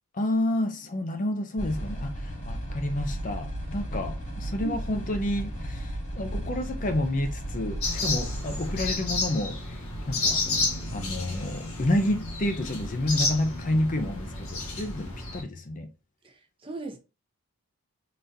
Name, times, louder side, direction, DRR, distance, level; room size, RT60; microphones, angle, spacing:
voice 1, 0.2-9.6 10.1-10.4 10.9-15.9, left 1 dB, 35° left, 0.6 m, -29 dB
sound 1, 1.6-9.0, right 1 dB, 55° left, 2.3 m, -34 dB
sound 2, 7.8-15.4, left 3 dB, 75° left, 1.5 m, -31 dB
sound 3, 10.5-13.5, right 1 dB, 10° left, 1.2 m, -46 dB
voice 2, 16.2-17.0, right 4 dB, 25° right, 0.7 m, -37 dB
3.9 x 3.5 x 2.7 m
head